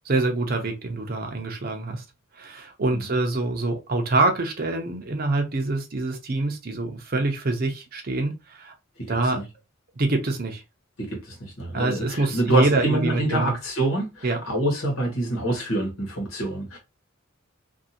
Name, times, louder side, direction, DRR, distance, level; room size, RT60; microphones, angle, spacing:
voice 1, 0.1-2.0 2.4-8.7 9.1-9.4 10.0-10.6 11.7-13.5 14.2-14.4, right 2 dB, 45° right, 0.6 m, -25 dB
voice 2, 11.0-16.8, right 1 dB, 85° left, 1.3 m, -26 dB
2.6 x 2.6 x 2.7 m
head